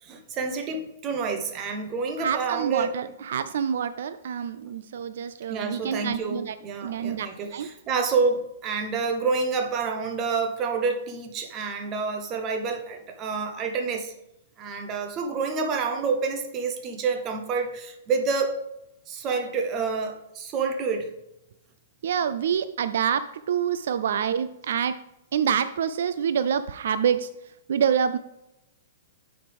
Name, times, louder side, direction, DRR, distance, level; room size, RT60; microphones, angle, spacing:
voice 1, 0.0-2.9 5.5-14.1 14.6-18.7 19.1-21.1, right 4 dB, 20° right, 4 dB, 0.8 m, -28 dB
voice 2, 2.2-6.5 6.8-7.3 7.5-7.7 22.0-25.0 25.3-27.3 27.7-28.2, right 8 dB, 65° right, 12 dB, 0.3 m, -26 dB
9.2 x 4.9 x 3.4 m, 0.87 s
hypercardioid pair, 165°, 0 cm